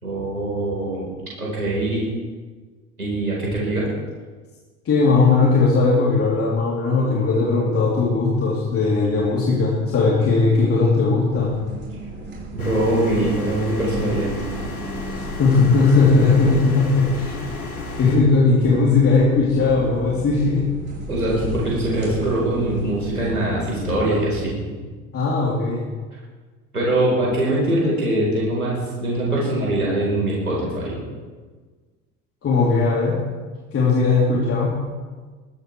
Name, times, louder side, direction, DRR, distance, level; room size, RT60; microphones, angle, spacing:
voice 1, 0.0-1.1 1.4-2.0 3.0-3.9 12.5-14.3 21.1-24.6 26.7-31.0, right 1 dB, 90° right, -5 dB, 4.8 m, -22 dB
voice 2, 4.9-11.6 15.1-17.4 18.0-20.7 25.1-25.9 32.4-33.2 33.7-34.8, left 4 dB, 30° left, -5 dB, 3.8 m, -18 dB
sound 1, 11.3-24.1, right 1 dB, 25° right, 5.3 m, -36 dB
sound 2, 12.6-18.2, left 2 dB, 80° left, 2.9 m, -32 dB
22.5 x 15.0 x 3.5 m, 1.4 s
figure-of-eight pair, 70°, 43 cm